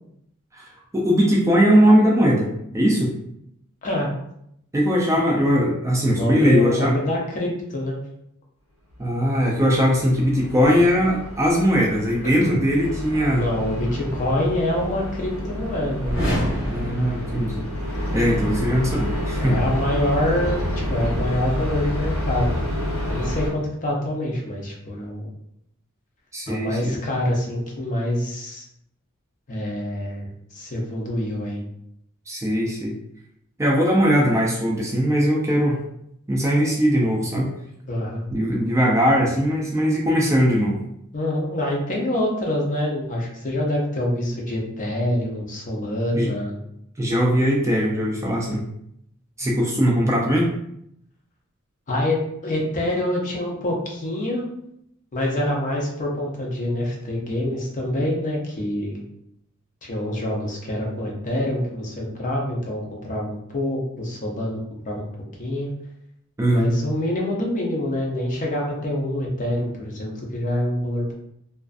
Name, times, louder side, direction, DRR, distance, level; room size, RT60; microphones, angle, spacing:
voice 1, 0.5-2.5 2.7-3.1 4.7-7.0 9.0-13.4 16.6-17.6 18.1-19.6 26.3-27.0 32.3-32.9 33.6-35.8 36.3-37.5 38.3-40.8 46.1-46.3 47.0-48.6 49.4-50.5 66.4-66.8, equal, 15° right, -3 dB, 0.4 m, -20 dB
voice 2, 3.8-4.1 6.1-8.0 12.4-12.6 13.3-16.1 19.4-22.7 23.0-25.3 26.5-28.6 29.5-30.3 30.5-31.6 37.9-38.3 41.1-46.6 51.9-54.5 55.1-59.0 59.8-65.1 65.4-65.7 66.5-71.1, left 1 dB, 40° left, -2 dB, 0.6 m, -26 dB
sound 1, 9.5-23.5, left 1 dB, 75° left, 0.7 m, -29 dB
sound 2, 16.0-18.0, equal, 55° left, 1.1 m, -27 dB
2.4 x 2.4 x 2.3 m, 0.75 s
head